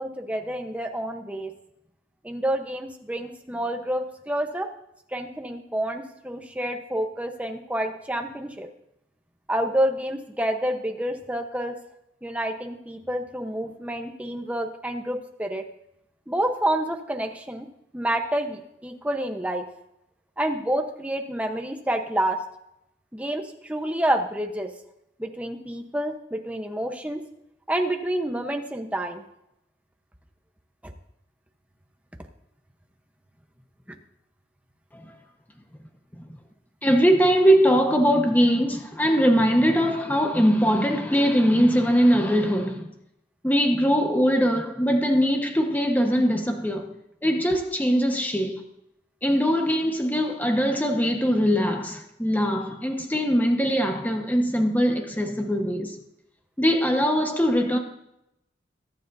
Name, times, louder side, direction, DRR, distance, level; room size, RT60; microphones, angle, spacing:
voice 1, 0.0-1.5 2.2-4.7 5.1-8.7 9.5-11.8 12.2-15.7 16.3-17.7 17.9-19.7 20.4-22.4 23.1-24.7 25.2-27.3 27.7-29.2 30.8-30.9 33.9-34.0, right 1 dB, 10° right, 1.0 m, -28 dB
voice 2, 36.8-42.9 43.4-46.9 47.2-48.6 49.2-56.0 56.6-57.8, equal, 10° left, 1.3 m, -21 dB
22.0 x 9.5 x 2.7 m
head